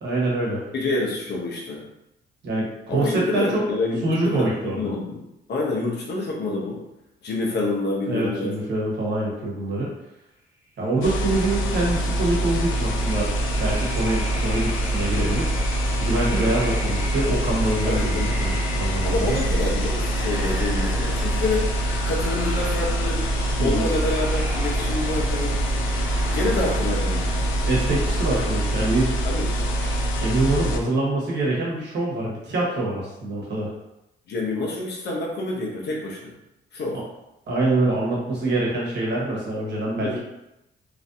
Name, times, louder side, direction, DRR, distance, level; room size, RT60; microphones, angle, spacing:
voice 1, 0.0-0.6 2.4-3.7 4.0-4.9 8.1-9.9 10.8-13.3 13.6-15.5 16.0-19.4 23.6-23.9 27.6-29.2 29.5-33.7 36.9-37.0 37.5-40.2, right 2 dB, 60° right, -5 dB, 1.3 m, -25 dB
voice 2, 0.7-1.8 2.9-5.2 5.5-6.8 7.2-8.6 17.8-18.5 19.0-21.7 22.1-23.3 23.6-25.6 26.3-27.4 29.3-29.5 34.3-36.3 36.7-37.0 40.0-40.2, left 2 dB, 60° left, -2 dB, 0.9 m, -27 dB
sound 1, 11.0-30.8, right 1 dB, 80° left, 0.5 m, -25 dB
sound 2, 12.1-28.5, right 1 dB, 15° right, 0.8 m, -33 dB
3.0 x 2.5 x 2.7 m, 0.88 s
cardioid pair, 90°, 20 cm